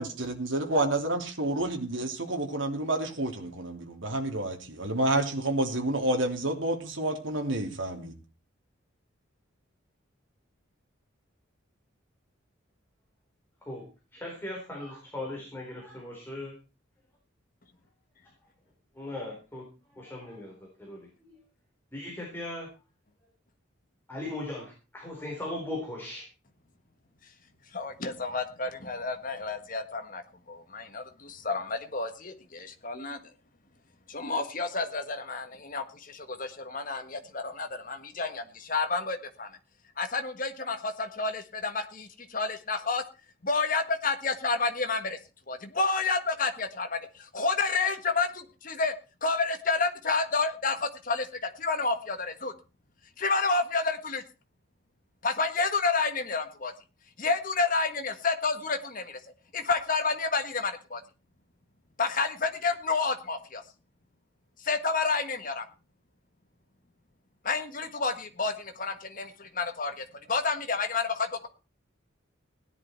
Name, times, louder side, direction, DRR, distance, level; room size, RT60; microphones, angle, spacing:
voice 1, 0.0-8.1, right 1 dB, 70° right, 3 dB, 3.1 m, -29 dB
voice 2, 14.1-16.5 19.0-19.6 19.9-20.5 20.8-21.0 21.9-22.7 24.1-26.2, left 1 dB, 10° left, -3 dB, 4.1 m, -38 dB
voice 3, 27.7-30.2 30.5-33.2 34.1-39.5 40.0-43.0 43.4-45.2 45.5-47.0 47.3-48.9 49.2-52.5 53.2-54.2 55.2-56.7 57.2-59.2 59.5-61.0 62.0-63.6 64.6-65.7 67.4-71.5, left 4 dB, 40° left, 7 dB, 1.6 m, -30 dB
17.0 x 10.5 x 4.5 m, 0.33 s
head